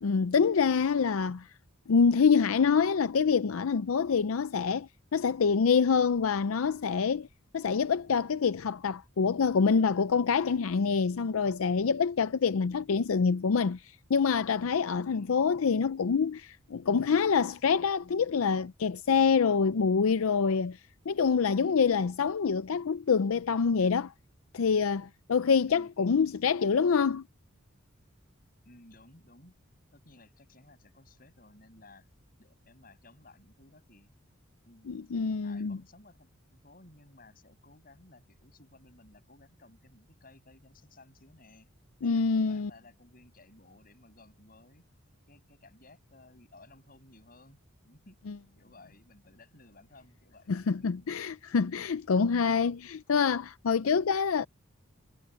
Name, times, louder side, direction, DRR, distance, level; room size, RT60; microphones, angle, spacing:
voice 1, 0.0-1.5 1.9-7.3 7.5-20.8 21.1-24.1 24.5-27.2 34.9-35.8 42.0-42.7 48.3-48.4 50.5-54.5, left 5 dB, 85° left, 0.5 m, -26 dB
voice 2, 15.0-15.4 25.7-26.2 28.7-29.5 29.9-32.1 32.4-34.1 34.7-41.7 42.0-44.8 45.3-47.6 47.8-48.2 48.6-50.7, left 2 dB, 45° left, 7.1 m, -57 dB
head